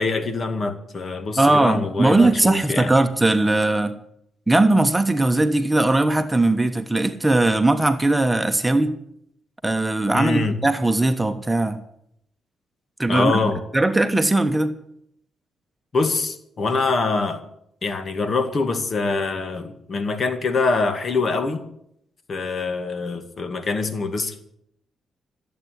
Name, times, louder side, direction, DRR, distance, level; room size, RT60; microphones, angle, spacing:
voice 1, 0.0-2.9 10.1-10.6 13.1-13.6 15.9-17.4 17.8-21.6 22.3-24.4, left 3 dB, 45° left, 9 dB, 2.1 m, -24 dB
voice 2, 1.4-4.0 4.5-8.9 9.6-11.8 13.0-13.4 13.7-14.7, right 2 dB, 10° right, 8 dB, 1.3 m, -19 dB
14.5 x 8.5 x 9.7 m, 0.73 s
cardioid pair, 75°, 0 cm